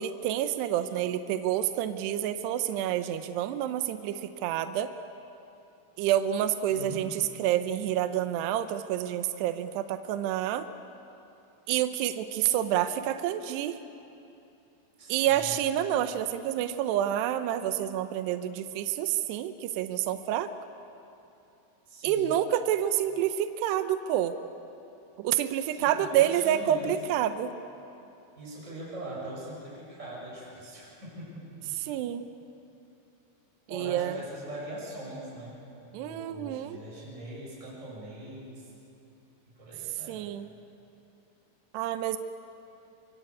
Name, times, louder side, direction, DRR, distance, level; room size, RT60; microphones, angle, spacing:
voice 1, 0.0-4.9 6.0-10.7 11.7-13.8 15.1-20.5 22.0-24.4 25.2-27.5 31.8-32.3 33.7-34.2 35.9-36.8 40.1-40.5 41.7-42.2, right 11 dB, 85° right, 9 dB, 2.4 m, -28 dB
voice 2, 6.7-7.3 15.0-15.6 21.9-22.3 25.7-26.9 28.4-31.8 33.7-38.7 39.5-40.2, right 1 dB, 15° right, -5 dB, 7.0 m, -42 dB
26.0 x 24.0 x 8.5 m, 2.8 s
omnidirectional pair, 5.9 m